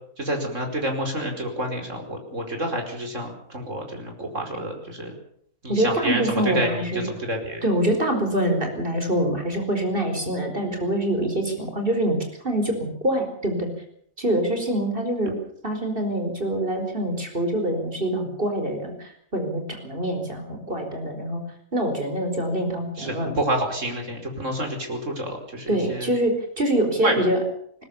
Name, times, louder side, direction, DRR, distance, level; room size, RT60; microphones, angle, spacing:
voice 1, 0.2-5.1 5.6-7.6 23.0-26.1 27.0-27.2, right 1 dB, 55° right, 3 dB, 5.3 m, -28 dB
voice 2, 5.7-7.1 7.6-12.2 12.4-13.7 14.2-15.4 15.6-21.4 21.7-23.3 25.7-27.4, right 1 dB, 35° right, 5 dB, 5.0 m, -25 dB
20.5 x 20.0 x 7.0 m, 0.64 s
omnidirectional pair, 1.5 m